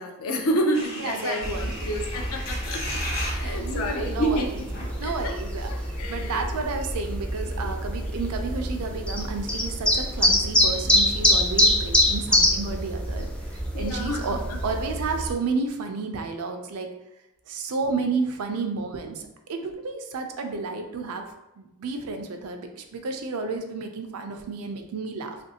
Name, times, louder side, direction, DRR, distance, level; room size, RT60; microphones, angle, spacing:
voice 1, 0.0-5.3 5.7-6.7 7.6-7.7 13.7-14.6, equal, 70° left, 2 dB, 0.5 m, -30 dB
sound 1, 0.7-5.8 6.1-6.2 6.4-6.6, left 1 dB, 45° left, 1.1 m, -37 dB
voice 2, 1.0-2.0 3.4-4.4 5.0-16.9 17.5-21.2 21.6-25.4, right 4 dB, 85° right, 5 dB, 0.4 m, -31 dB
sound 2, 1.4-15.3, left 1 dB, 5° left, 0.3 m, -26 dB
3.0 x 2.5 x 2.7 m, 0.92 s
head